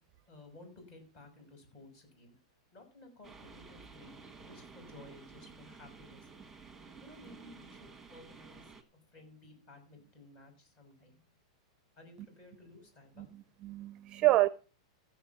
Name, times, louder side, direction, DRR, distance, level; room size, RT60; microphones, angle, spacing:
voice 1, 0.3-2.4 2.7-6.3 7.0-8.7 9.1-11.2 12.0-13.3, left 2 dB, 30° left, 6.3 m, -55 dB
sound 1, 3.2-8.8, right 4 dB, 5° right, 1.6 m, -53 dB
voice 2, 13.2-14.5, right 17 dB, 30° right, 0.6 m, -28 dB
15.0 x 7.5 x 5.8 m
supercardioid pair, 155°, 3 cm